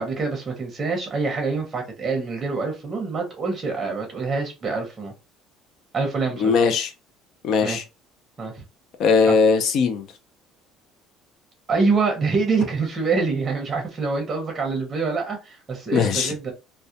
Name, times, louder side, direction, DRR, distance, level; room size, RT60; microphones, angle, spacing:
voice 1, 0.0-5.1 5.9-6.5 7.6-7.8 8.4-8.6 9.3-9.4 11.7-16.5, right 4 dB, 20° right, 0.7 m, -25 dB
voice 2, 6.4-6.9 7.4-7.8 9.0-10.1 15.9-16.3, left 5 dB, 45° left, 0.4 m, -19 dB
2.3 x 2.1 x 2.7 m
cardioid pair, 170°, 0 cm